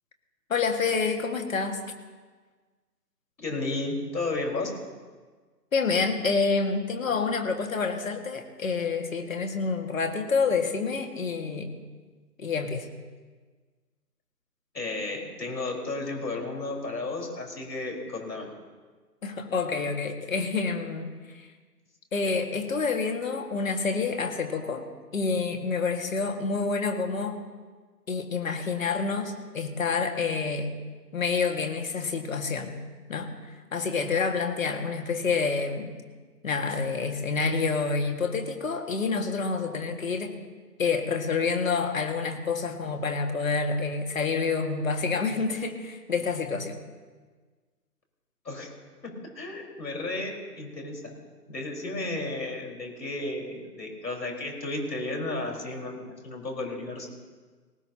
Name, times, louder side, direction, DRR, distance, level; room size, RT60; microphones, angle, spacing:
voice 1, 0.5-1.8 5.7-11.8 12.4-12.9 19.2-21.5 22.1-24.8 25.1-27.4 28.1-30.7 31.1-32.8 33.1-33.3 33.7-36.0 36.4-40.3 40.8-46.8, left 4 dB, 55° left, 4 dB, 2.0 m, -28 dB
voice 2, 3.4-4.7 14.7-18.5 48.4-48.7 49.0-51.1 51.5-57.1, left 2 dB, 80° left, 0 dB, 4.9 m, -33 dB
19.0 x 19.0 x 2.9 m, 1.4 s
figure-of-eight pair, 155°, 49 cm